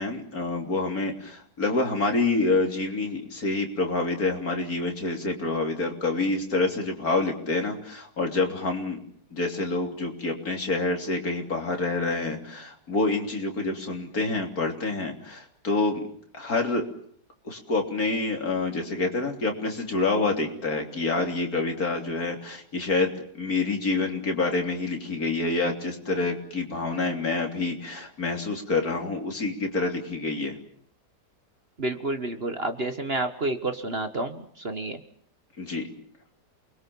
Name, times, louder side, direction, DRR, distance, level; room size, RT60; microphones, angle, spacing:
voice 1, 0.0-9.0 9.3-16.1 16.3-16.9 17.4-30.5 35.6-35.9, left 3 dB, 60° left, 3 dB, 3.8 m, -27 dB
voice 2, 31.8-35.0, right 2 dB, 40° right, 8 dB, 1.6 m, -29 dB
29.0 x 22.0 x 7.2 m, 0.62 s
omnidirectional pair, 1.8 m